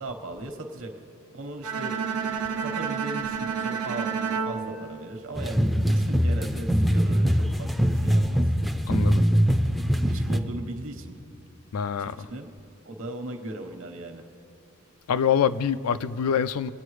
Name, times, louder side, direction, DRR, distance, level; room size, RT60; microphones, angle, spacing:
voice 1, 0.0-0.9 1.3-2.1 2.6-8.4 9.5-9.7 10.1-11.2 12.0-12.5 12.8-14.2, right 2 dB, 65° right, 1.2 m, -38 dB
Bowed string instrument, 1.6-5.8, right 6 dB, 90° right, 0.9 m, -30 dB
sound 1, 5.3-10.4, equal, ahead, 0.4 m, -22 dB
voice 2, 8.9-9.2 11.7-12.2 15.1-16.7, left 7 dB, 80° left, 0.4 m, -25 dB
22.0 x 8.4 x 3.2 m
head